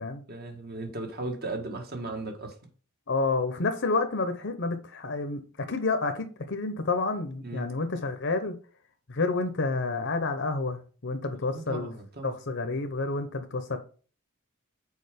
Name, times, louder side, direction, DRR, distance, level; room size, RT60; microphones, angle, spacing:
voice 1, 0.3-2.6 7.4-7.7 11.3-12.3, right 2 dB, 45° right, 1.7 m, -36 dB
voice 2, 3.1-8.6 9.1-11.9 12.2-13.8, left 3 dB, 55° left, 0.9 m, -29 dB
6.6 x 5.0 x 5.1 m
head